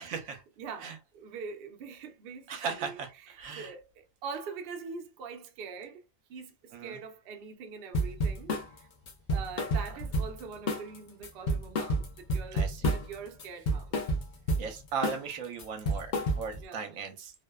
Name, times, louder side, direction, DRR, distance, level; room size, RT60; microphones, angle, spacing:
voice 1, 0.0-0.4 0.8-0.9 2.5-3.1 3.4-3.7 6.7-7.0 12.5-12.9 14.6-17.3, right 5 dB, 80° right, 1.0 m, -37 dB
voice 2, 0.6-6.0 6.3-8.9 9.3-14.0 16.6-16.9, right 5 dB, 60° right, 0.6 m, -43 dB
sound 1, 7.9-8.7 9.1-10.4 10.7-11.0 11.2-13.1 13.4-14.7 15.0-15.3 15.6-16.6, right 1 dB, 75° left, 0.4 m, -29 dB
2.6 x 2.1 x 2.2 m
omnidirectional pair, 1.4 m